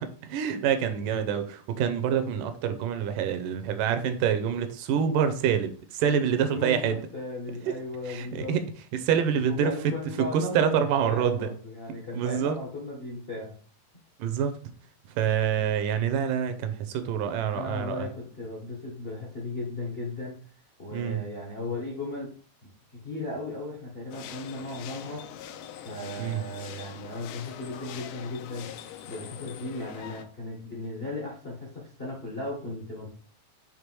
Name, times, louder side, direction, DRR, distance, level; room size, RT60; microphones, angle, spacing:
voice 1, 0.0-7.0 8.1-8.6 9.0-9.9 10.3-11.5 12.1-12.6 14.2-14.6 15.2-18.1 20.9-21.2 26.2-26.4, right 8 dB, 80° right, 9 dB, 2.1 m, -26 dB
voice 2, 6.5-8.6 9.5-13.5 17.5-20.4 20.8-22.3 22.9-25.3 25.8-28.7 29.1-33.1, left 2 dB, 65° left, -3 dB, 0.5 m, -36 dB
sound 1, 24.1-30.3, left 9 dB, 80° left, 2.0 m, -43 dB
6.7 x 3.3 x 4.7 m, 0.42 s
omnidirectional pair, 4.0 m